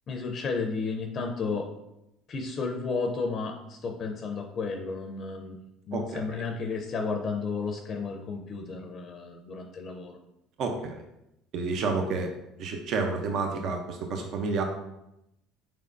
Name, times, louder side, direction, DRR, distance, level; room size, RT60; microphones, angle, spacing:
voice 1, 0.1-1.7 2.3-5.6 5.9-10.2, left 4 dB, 45° left, 3 dB, 0.5 m, -32 dB
voice 2, 5.9-6.2 10.6-11.0 11.5-12.3 12.6-14.6, right 4 dB, 60° right, 4 dB, 0.6 m, -30 dB
4.3 x 3.5 x 2.5 m, 0.87 s
supercardioid pair, 95°, 0 cm